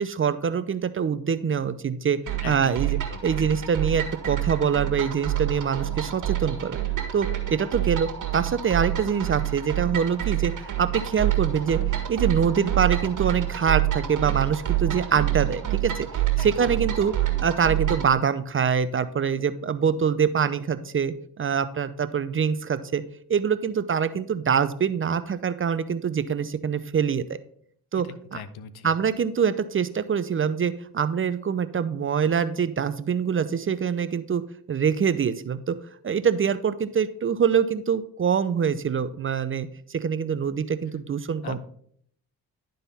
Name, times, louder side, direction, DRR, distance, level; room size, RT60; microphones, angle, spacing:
voice 1, 0.0-3.0 3.2-6.8 7.1-11.8 12.1-16.1 16.4-17.1 17.4-23.0 23.3-27.4 27.9-28.1 28.3-28.4 28.8-34.4 34.7-35.8 36.0-41.6, right 7 dB, 30° right, 13 dB, 0.5 m, -24 dB
sound 1, 2.3-18.1, right 14 dB, 50° right, 1.7 m, -27 dB
voice 2, 2.4-3.3 16.4-16.5 28.0-28.1 28.3-28.9 41.4-41.6, left 7 dB, 70° left, 14 dB, 0.8 m, -39 dB
11.5 x 3.9 x 4.1 m, 0.62 s
supercardioid pair, 60°, 39 cm